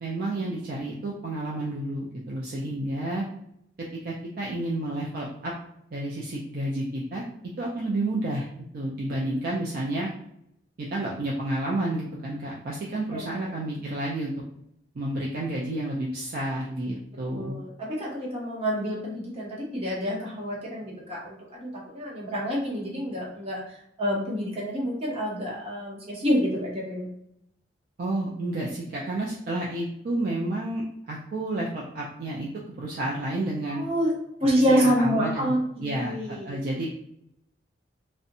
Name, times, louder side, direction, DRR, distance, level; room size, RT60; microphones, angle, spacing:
voice 1, 0.0-3.2 4.0-5.5 5.9-7.2 7.6-8.5 8.7-10.1 10.8-14.4 15.0-17.6 28.0-32.5 32.8-33.8 34.4-35.5 35.8-36.9, right 1 dB, 50° right, -4 dB, 0.4 m, -30 dB
voice 2, 13.1-13.4 17.4-23.6 24.0-27.1 33.6-34.1 34.4-36.6, equal, 35° right, -5 dB, 0.9 m, -27 dB
2.6 x 2.1 x 2.6 m, 0.76 s
head